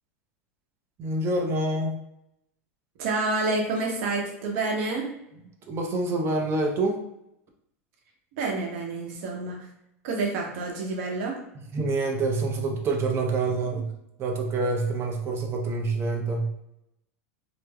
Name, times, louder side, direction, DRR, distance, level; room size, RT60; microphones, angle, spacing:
voice 1, 1.0-2.0 5.7-7.0 11.7-13.9 14.2-16.5, right 2 dB, 35° right, 2 dB, 0.6 m, -26 dB
voice 2, 3.0-5.1 8.4-9.7 10.0-11.4, right 3 dB, 65° right, 0 dB, 0.8 m, -28 dB
3.3 x 2.0 x 2.2 m, 0.81 s
hypercardioid pair, 100°, 8 cm